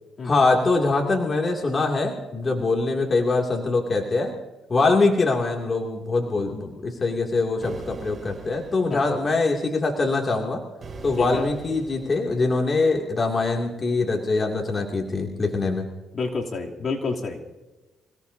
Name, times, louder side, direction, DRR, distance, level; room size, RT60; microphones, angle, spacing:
voice 1, 0.2-4.3 4.7-10.6 11.0-15.9, left 3 dB, 35° left, 0 dB, 2.6 m, -23 dB
sound 1, 7.6-9.0 10.8-12.2, right 3 dB, 35° right, 6.2 m, -41 dB
voice 2, 16.1-17.6, left 4 dB, 50° left, -1 dB, 3.0 m, -29 dB
27.5 x 17.5 x 2.8 m, 1.1 s
cardioid pair, 90°, 0 cm